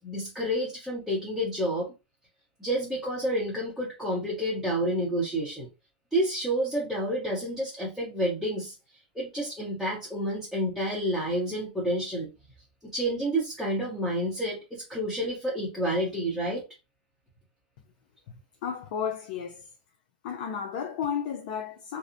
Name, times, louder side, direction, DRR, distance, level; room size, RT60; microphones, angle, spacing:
voice 1, 0.0-1.9 2.6-5.7 6.1-8.7 9.1-12.3 12.8-16.7, right 1 dB, 5° left, 0.8 m, -29 dB
voice 2, 18.6-19.7 20.2-22.0, left 7 dB, 55° left, 0.4 m, -33 dB
2.6 x 2.0 x 2.5 m
supercardioid pair, 140°, 5 cm